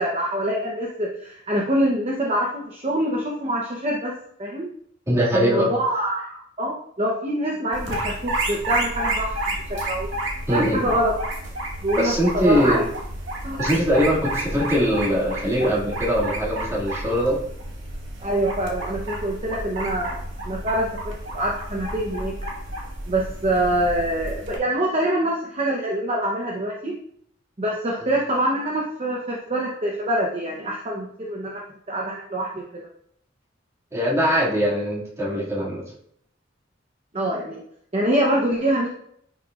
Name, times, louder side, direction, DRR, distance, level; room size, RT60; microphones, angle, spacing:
voice 1, 0.0-4.1 4.4-4.7 5.3-10.1 10.5-11.1 11.8-12.8 13.4-13.6 18.2-22.3 23.1-27.0 27.6-32.9 37.1-37.6 37.9-38.9, right 1 dB, 35° right, -2 dB, 0.9 m, -25 dB
voice 2, 5.1-5.7 10.5-10.8 12.0-12.8 13.6-17.4 33.9-35.8, equal, 15° right, -5 dB, 2.2 m, -21 dB
sound 1, 7.7-24.6, right 1 dB, 80° right, 2.0 m, -31 dB
10.0 x 6.0 x 2.5 m, 0.69 s
head